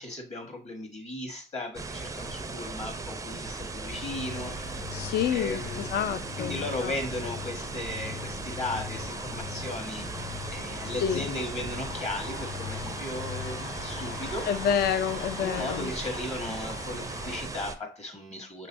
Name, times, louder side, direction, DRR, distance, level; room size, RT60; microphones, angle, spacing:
voice 1, 0.0-5.0 5.3-6.0 6.4-14.5 15.4-18.7, left 1 dB, 35° left, 3 dB, 1.7 m, -36 dB
sound 1, 1.7-17.7, right 3 dB, 15° right, 0.4 m, -38 dB
sound 2, 3.9-17.5, left 6 dB, 85° left, 1.1 m, -41 dB
voice 2, 4.9-6.9 11.0-11.2 14.5-15.9, left 8 dB, 55° left, 11 dB, 0.4 m, -28 dB
6.1 x 3.2 x 2.7 m, 0.33 s
cardioid pair, 90°, 20 cm